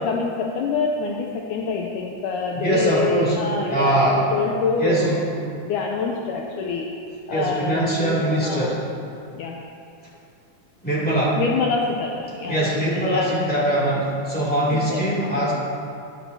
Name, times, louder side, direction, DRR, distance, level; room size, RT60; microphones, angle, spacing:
voice 1, 0.0-4.0 4.3-5.3 5.7-6.9 7.3-8.8 9.3-9.6 11.4-13.3 14.7-15.5, left 4 dB, 80° left, 0 dB, 1.9 m, -26 dB
voice 2, 2.6-4.2 4.8-5.3 7.3-8.8 10.8-11.4 12.5-15.5, right 1 dB, 5° left, -8 dB, 1.8 m, -22 dB
13.0 x 11.0 x 2.8 m, 2.5 s
omnidirectional pair, 4.0 m